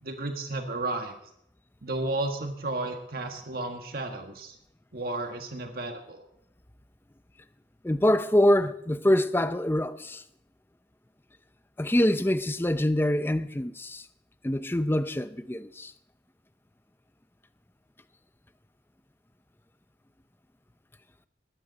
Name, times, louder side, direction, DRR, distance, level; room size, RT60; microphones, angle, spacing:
voice 1, 0.0-1.1 1.8-4.5 4.9-6.2, right 2 dB, 55° right, 1.5 m, -33 dB
voice 2, 7.8-10.2 11.8-14.0 14.4-15.9, left 1 dB, 15° left, 0.6 m, -25 dB
20.5 x 15.5 x 4.1 m
head